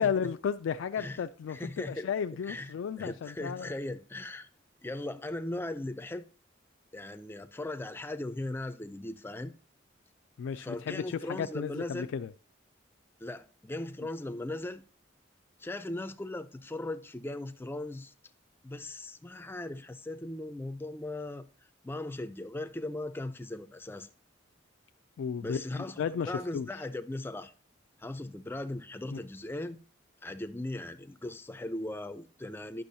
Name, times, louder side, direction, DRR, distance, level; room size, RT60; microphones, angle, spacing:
voice 1, 0.0-3.7 10.4-12.3 25.2-26.7 29.1-29.2, left 7 dB, 90° left, 0.3 m, -33 dB
voice 2, 1.0-2.1 2.4-4.5 4.8-6.2 6.9-9.5 10.5-12.1 13.2-14.8 15.6-18.1 18.6-21.5 21.8-24.1 25.4-27.5 28.0-29.8 30.2-32.8, left 1 dB, 10° left, 0.4 m, -38 dB
10.0 x 6.1 x 2.7 m
head